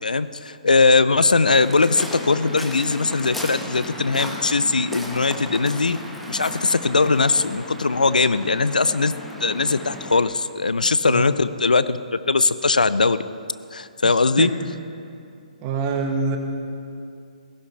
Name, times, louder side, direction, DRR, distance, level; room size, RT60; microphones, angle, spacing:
voice 1, 0.0-6.0 6.3-9.1 9.4-13.2 13.7-14.5, left 4 dB, 80° left, 15 dB, 0.5 m, -20 dB
Waves surf, 1.5-10.2, left 1 dB, ahead, 1.2 m, -35 dB
voice 2, 14.0-14.5 15.6-16.4, right 4 dB, 25° right, 3 dB, 1.4 m, -26 dB
17.0 x 15.5 x 3.4 m, 2.5 s
figure-of-eight pair, 135°, 4 cm